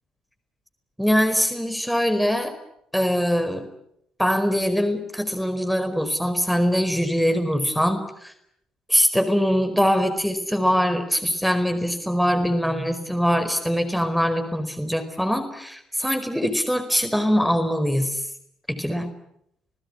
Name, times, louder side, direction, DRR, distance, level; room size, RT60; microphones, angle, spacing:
voice 1, 1.0-2.5 2.9-3.7 4.2-8.3 8.9-18.2 18.7-19.1, equal, ahead, 8 dB, 4.7 m, -22 dB
28.0 x 20.0 x 9.9 m, 0.75 s
hypercardioid pair, 50°, 2 cm